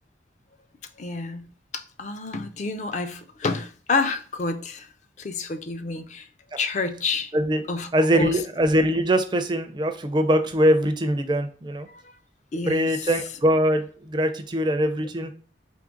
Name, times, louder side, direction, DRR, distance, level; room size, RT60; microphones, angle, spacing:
voice 1, 1.0-4.9 5.2-6.3 6.6-7.3 7.7-7.9 8.1-8.4 12.5-13.1, left 3 dB, 40° left, 0.4 m, -29 dB
voice 2, 7.3-7.6 7.9-11.9 12.7-15.3, equal, 25° right, 0.4 m, -22 dB
3.6 x 3.2 x 3.7 m
head